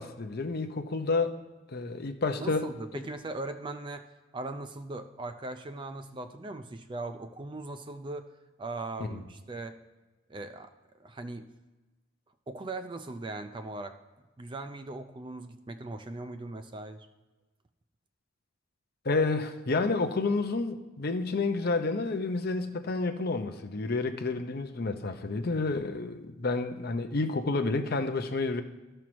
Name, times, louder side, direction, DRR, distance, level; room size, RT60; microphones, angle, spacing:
voice 1, 0.0-1.4 1.7-2.7 2.9-3.0 9.1-9.2 19.0-28.6, left 3 dB, 45° left, 7 dB, 0.6 m, -30 dB
voice 2, 2.4-8.3 8.6-9.8 10.3-10.7 11.0-11.5 12.5-14.0 14.4-17.1, right 2 dB, 25° right, 9 dB, 0.4 m, -39 dB
12.5 x 4.5 x 6.1 m, 1.2 s
head